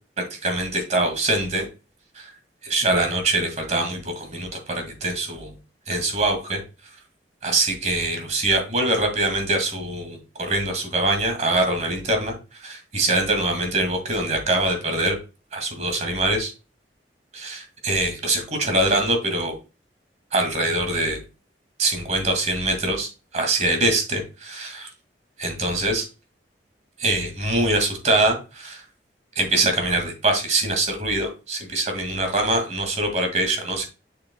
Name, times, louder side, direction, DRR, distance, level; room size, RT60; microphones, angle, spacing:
voice 1, 0.2-1.7 2.2-2.3 2.6-5.5 5.9-6.6 7.4-15.2 15.5-16.5 17.3-19.6 20.3-21.2 21.8-24.9 25.4-26.1 27.0-28.8 29.4-33.9, right 2 dB, 40° right, 4 dB, 2.1 m, -23 dB
6.8 x 6.8 x 2.2 m, 0.30 s
head